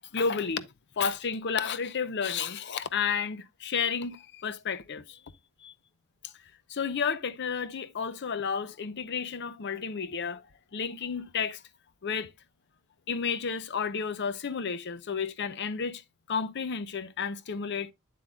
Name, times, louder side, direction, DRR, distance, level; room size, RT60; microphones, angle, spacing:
voice 1, 0.1-0.7 1.0-5.2 5.6-5.7 6.2-6.3 6.7-10.4 10.7-11.6 12.0-12.3 13.1-16.0 16.3-17.9, left 6 dB, 55° left, 0.6 m, -31 dB
8.5 x 7.7 x 2.3 m
head